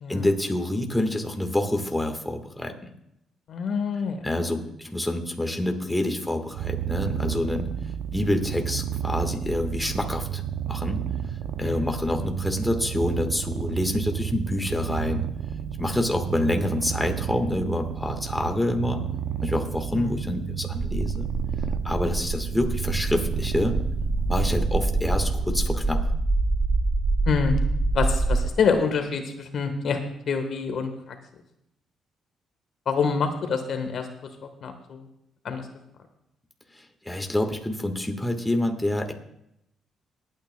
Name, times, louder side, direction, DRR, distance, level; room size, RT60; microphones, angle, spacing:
voice 1, 0.1-2.7 4.2-7.7 8.1-11.0 11.6-15.2 15.8-19.0 19.4-21.3 21.8-23.8 24.3-26.0 36.7-39.1, left 1 dB, 10° left, 4 dB, 1.4 m, -27 dB
voice 2, 3.5-4.2 7.2-7.5 11.6-11.9 19.9-20.2 27.3-27.5 27.9-30.0 30.3-31.1 32.9-34.1 34.6-35.0 35.4-35.7, left 5 dB, 65° left, 6 dB, 1.3 m, -26 dB
Purr, 6.5-25.8, right 9 dB, 80° right, 0.5 m, -32 dB
sound 1, 20.8-28.5, right 2 dB, 20° right, 0.7 m, -26 dB
24.5 x 9.0 x 2.2 m, 0.81 s
cardioid pair, 90°, 0 cm